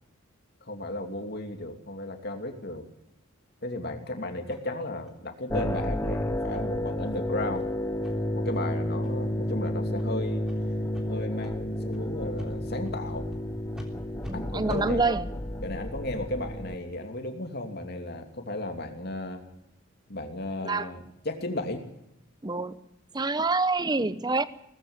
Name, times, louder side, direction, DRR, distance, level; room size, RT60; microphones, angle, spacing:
voice 1, 0.6-2.8 3.6-7.7 8.3-10.4 11.1-13.2 14.3-15.1 15.6-19.4 20.1-21.8, left 1 dB, 50° left, 2.9 m, -35 dB
sound 1, 4.5-4.6 5.1-5.2 5.5-5.7 6.0-6.1 6.5-6.6 7.0-7.2 7.5-7.6 8.0-8.1 8.5-8.6 9.0-9.3 9.9-10.1 10.4-10.6 10.9-11.1 11.4-11.5 11.9-12.0 12.4-12.5 12.8-13.0 13.3-13.4 13.7-13.9 14.2-14.3 14.7-14.8, equal, 5° right, 3.4 m, -46 dB
sound 2, 5.5-16.7, left 1 dB, 15° left, 0.8 m, -31 dB
voice 2, 14.3-15.3 20.6-20.9 22.4-22.8 23.1-24.4, right 3 dB, 20° right, 0.9 m, -26 dB
19.0 x 15.0 x 9.5 m
head